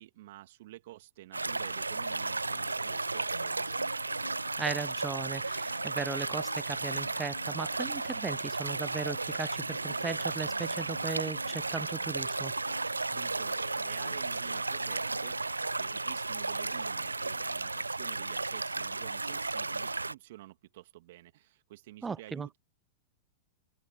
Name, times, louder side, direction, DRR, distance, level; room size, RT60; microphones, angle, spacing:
voice 1, 0.0-3.9 13.1-22.6, right 16 dB, 60° right, 2.4 m, -50 dB
sound 1, 1.3-20.1, right 3 dB, 90° right, 0.4 m, -34 dB
sound 2, 2.0-16.7, left 4 dB, 85° left, 1.2 m, -52 dB
voice 2, 4.6-12.5 22.0-22.5, right 5 dB, 15° right, 0.4 m, -37 dB
figure-of-eight pair, 100°, 0 cm